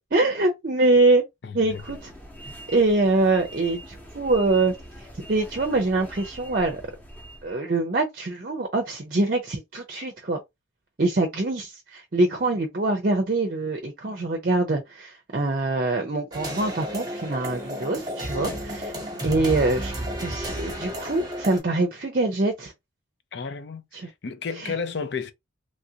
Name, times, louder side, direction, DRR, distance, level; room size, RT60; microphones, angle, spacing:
voice 1, 0.1-1.2 1.5-2.1 2.7-6.8 7.4-10.4 11.0-18.9 19.2-22.7 23.9-24.1 24.6-24.7, right 2 dB, 45° right, 0.5 m, -24 dB
voice 2, 1.4-1.8 18.3-18.6 23.3-25.3, left 5 dB, 60° left, 0.5 m, -33 dB
sound 1, 1.6-7.5, right 1 dB, 10° left, 0.9 m, -43 dB
sound 2, 16.3-21.6, equal, 20° right, 1.0 m, -32 dB
3.1 x 2.5 x 2.7 m
head